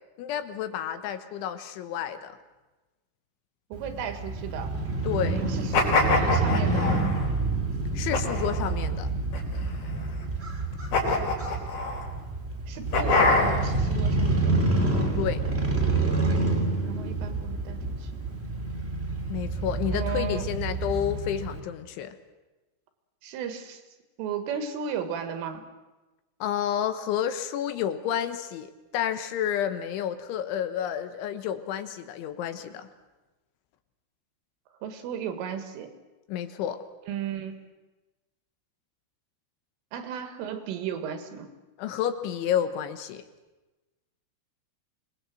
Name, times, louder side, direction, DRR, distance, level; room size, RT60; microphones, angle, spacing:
voice 1, 0.2-2.4 5.0-5.4 7.9-9.1 15.1-15.4 19.3-22.2 26.4-32.9 36.3-36.8 41.8-43.2, left 9 dB, 75° left, 10 dB, 3.4 m, -30 dB
Crow / Motorcycle, 3.7-21.6, right 3 dB, 20° right, 1.9 m, -28 dB
voice 2, 3.7-4.7 5.3-7.1 12.7-14.5 16.8-18.1 19.9-20.5 23.2-23.8 24.2-25.6 34.8-35.9 37.1-37.6 39.9-41.5, right 7 dB, 75° right, 8 dB, 4.5 m, -35 dB
sound 1, 5.7-7.3 8.1-8.7 9.3-10.1 10.9-12.0 12.9-13.8, left 3 dB, 50° left, 5.7 m, -25 dB
26.5 x 20.0 x 7.7 m, 1.1 s
omnidirectional pair, 5.8 m